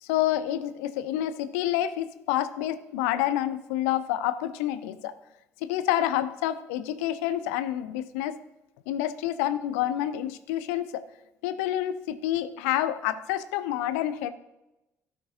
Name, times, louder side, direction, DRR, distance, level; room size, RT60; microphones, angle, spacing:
voice 1, 0.0-5.1 5.6-8.4 8.9-11.0 11.4-14.3, left 12 dB, 70° left, 13 dB, 0.5 m, -28 dB
16.5 x 6.0 x 2.7 m, 0.97 s
figure-of-eight pair, 45°, 8 cm